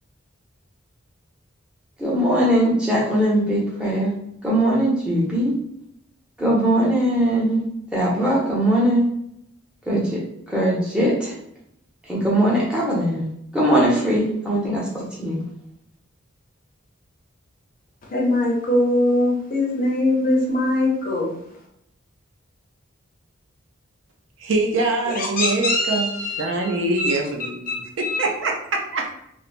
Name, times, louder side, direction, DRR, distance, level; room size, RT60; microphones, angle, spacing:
voice 1, 2.0-4.1 4.4-5.5 6.4-7.6 7.9-9.0 9.9-10.2 10.5-11.3 12.1-13.3 13.5-15.4, right 1 dB, 5° right, -6 dB, 0.6 m, -20 dB
voice 2, 18.1-21.3 25.1-27.1 28.0-28.3, left 1 dB, 40° left, -2 dB, 0.6 m, -22 dB
voice 3, 24.4-29.1, right 2 dB, 60° right, 2 dB, 0.4 m, -24 dB
3.1 x 2.0 x 2.4 m, 0.76 s
head